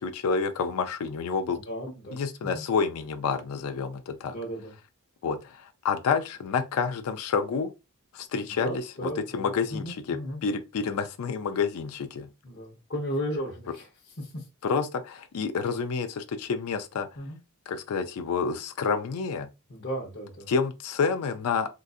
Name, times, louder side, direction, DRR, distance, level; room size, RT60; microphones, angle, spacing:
voice 1, 0.0-1.6 2.1-4.4 5.2-7.7 8.1-12.3 14.6-17.1 17.7-19.5 20.5-21.7, left 5 dB, 70° left, 0.4 m, -29 dB
voice 2, 1.5-2.6 4.2-4.7 8.4-10.4 12.4-14.5 17.2-17.4 19.7-20.5, equal, 50° left, 1.0 m, -35 dB
3.8 x 2.6 x 2.4 m
head